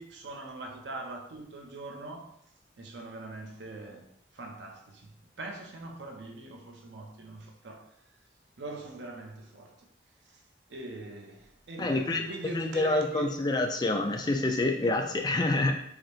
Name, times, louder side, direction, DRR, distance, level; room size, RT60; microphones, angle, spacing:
voice 1, 0.0-2.3 2.8-5.1 5.4-7.9 8.6-9.8 10.3-10.4 10.7-13.4, right 2 dB, 75° right, 0.6 m, -42 dB
voice 2, 11.8-12.2 12.5-15.7, left 2 dB, 20° left, 0.3 m, -27 dB
4.8 x 2.0 x 3.0 m
head